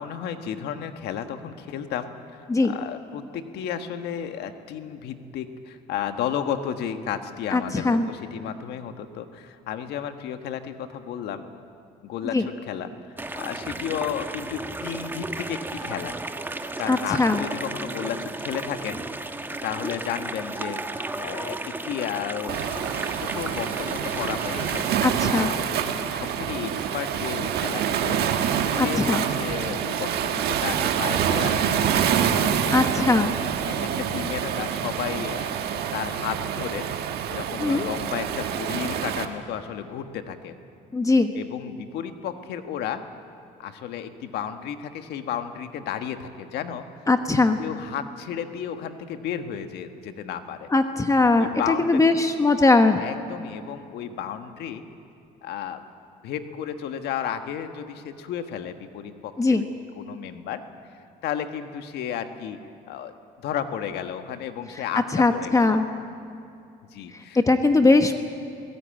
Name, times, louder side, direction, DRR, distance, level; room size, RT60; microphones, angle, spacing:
voice 1, 0.0-11.5 12.0-16.2 16.8-20.8 21.2-22.7 22.9-25.7 26.1-28.2 28.7-33.0 33.6-35.5 35.9-36.8 37.3-40.6 41.3-43.0 43.6-46.8 47.6-50.7 51.4-52.1 53.0-54.8 55.4-55.8 56.2-59.6 60.0-60.6 61.2-62.6 62.9-65.8 66.9-67.4, left 9 dB, 80° left, 8 dB, 1.5 m, -33 dB
voice 2, 7.5-8.1 12.3-12.4 16.9-17.5 25.0-25.5 28.7-29.2 32.7-33.3 37.6-37.9 40.9-41.3 47.1-47.6 50.7-53.0 59.4-59.7 65.1-65.9 67.1-68.2, left 3 dB, 20° left, 7 dB, 1.0 m, -20 dB
sound 1, 13.2-24.9, right 2 dB, 10° right, 1.1 m, -34 dB
Waves surf, 22.5-39.3, right 8 dB, 70° right, 1.5 m, -26 dB
23.0 x 17.0 x 9.0 m, 2.6 s
cardioid pair, 110°, 17 cm